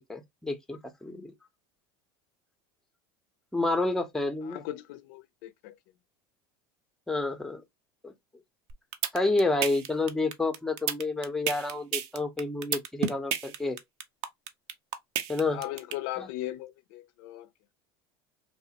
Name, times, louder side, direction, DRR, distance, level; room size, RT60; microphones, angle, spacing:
voice 1, 0.1-1.3 3.5-4.6 7.1-7.6 8.0-8.1 9.1-13.8 15.3-15.6 16.2-16.3, left 2 dB, 5° left, 0.5 m, -29 dB
voice 2, 4.4-5.7 15.5-17.5, left 15 dB, 65° left, 0.4 m, -38 dB
sound 1, 8.7-15.9, right 9 dB, 60° right, 0.6 m, -30 dB
3.2 x 2.0 x 2.8 m
supercardioid pair, 110°, 12 cm